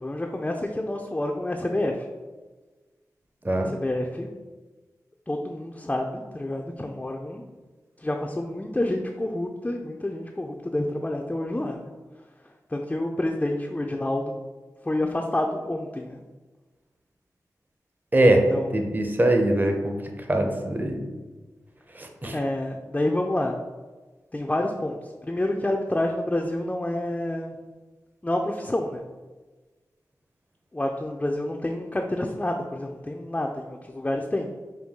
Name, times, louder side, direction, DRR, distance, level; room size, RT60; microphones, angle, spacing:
voice 1, 0.0-2.0 3.7-4.3 5.3-7.5 8.0-11.9 12.7-14.2 14.8-16.2 18.5-18.9 22.3-23.6 24.3-25.0 25.2-27.5 28.2-29.0 30.7-34.5, left 1 dB, 20° left, 2 dB, 0.4 m, -28 dB
voice 2, 3.4-3.8 18.1-18.5 18.7-20.0 20.3-21.0 21.9-22.4, right 1 dB, 25° right, 3 dB, 0.7 m, -22 dB
5.2 x 2.3 x 3.6 m, 1.3 s
cardioid pair, 45°, 7 cm